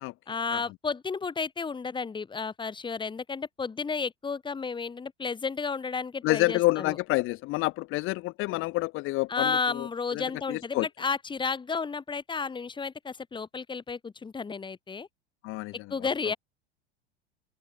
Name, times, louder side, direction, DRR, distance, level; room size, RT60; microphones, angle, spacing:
voice 1, 0.3-7.0 9.3-15.1 15.9-16.4, left 5 dB, 15° left, 2.3 m, -32 dB
voice 2, 6.2-10.9 15.4-15.7, left 21 dB, 40° left, 1.4 m, -28 dB
figure-of-eight pair, 80°, 32 cm